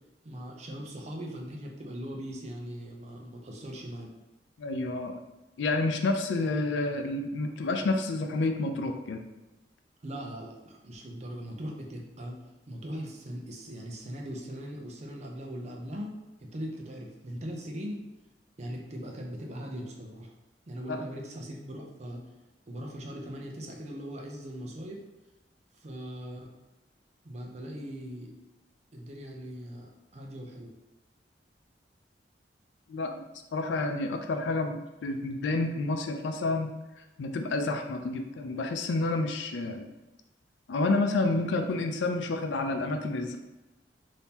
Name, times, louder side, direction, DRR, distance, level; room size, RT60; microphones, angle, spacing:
voice 1, 0.2-4.1 10.0-12.4 12.7-18.0 18.6-20.3 20.7-22.2 22.7-25.0 25.7-26.5 27.2-28.3 28.9-30.7, equal, 40° right, 0 dB, 0.5 m, -40 dB
voice 2, 4.6-5.2 5.6-9.2 20.9-21.0 32.9-33.2 33.5-36.7 37.2-39.8 40.7-43.4, left 2 dB, 90° left, 5 dB, 0.4 m, -29 dB
3.5 x 2.7 x 2.8 m, 1.0 s
head